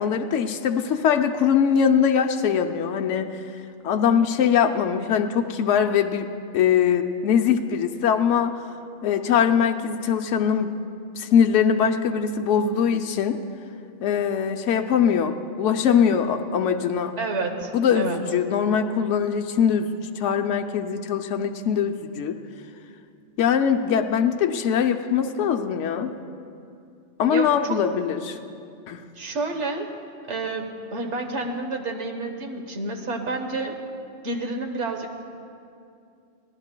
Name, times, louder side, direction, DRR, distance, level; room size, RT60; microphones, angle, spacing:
voice 1, 0.0-3.3 3.8-6.3 6.5-8.6 9.0-10.7 11.2-13.4 14.0-17.1 17.7-19.9 20.2-22.4 23.4-26.1 27.2-28.4 28.9-29.0, left 7 dB, 85° left, 5 dB, 1.0 m, -22 dB
voice 2, 17.2-18.2 27.3-27.8 29.2-29.9 30.3-33.8 34.2-35.2, right 3 dB, 75° right, 4 dB, 1.4 m, -29 dB
24.0 x 17.0 x 2.2 m, 2.5 s
omnidirectional pair, 1.2 m